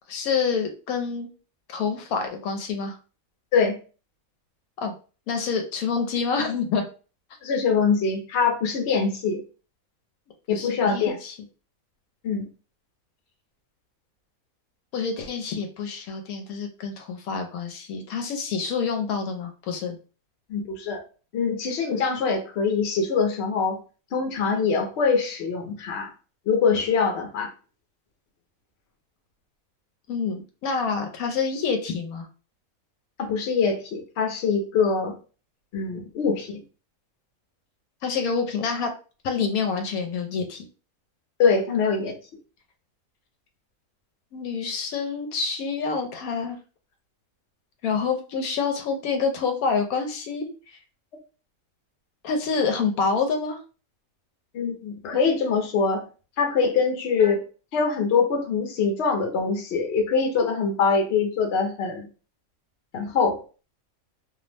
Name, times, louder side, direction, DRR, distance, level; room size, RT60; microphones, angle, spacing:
voice 1, 0.1-1.3 1.7-3.0 4.8-4.9 5.3-6.8 10.5-11.3 14.9-20.0 30.1-32.3 38.0-38.9 39.2-40.6 44.3-46.6 47.8-50.5 52.2-53.6, left 5 dB, 80° left, 4 dB, 1.0 m, -27 dB
voice 2, 7.4-9.4 10.5-11.2 12.2-12.5 20.5-21.0 21.3-23.8 24.1-26.1 26.5-27.5 33.2-35.2 35.7-36.6 41.4-42.2 54.5-56.0 56.4-57.4 57.7-62.1 62.9-63.4, left 5 dB, 55° left, 3 dB, 0.8 m, -23 dB
2.6 x 2.0 x 3.2 m, 0.36 s
omnidirectional pair, 1.5 m